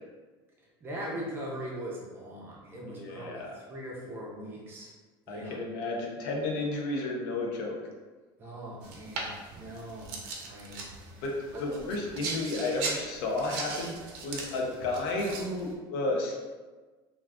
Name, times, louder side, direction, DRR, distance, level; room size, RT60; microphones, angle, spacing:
voice 1, 0.6-4.9 5.3-5.6 8.4-10.1 10.4-10.8 11.5-11.8, equal, 20° right, -3 dB, 0.5 m, -40 dB
voice 2, 2.8-3.5 5.3-7.8 11.2-14.0 14.2-16.4, left 2 dB, 70° left, -1 dB, 0.6 m, -32 dB
sound 1, 8.8-15.7, right 4 dB, 75° right, 0.6 m, -39 dB
2.4 x 2.3 x 3.4 m, 1.3 s
cardioid pair, 180°, 11 cm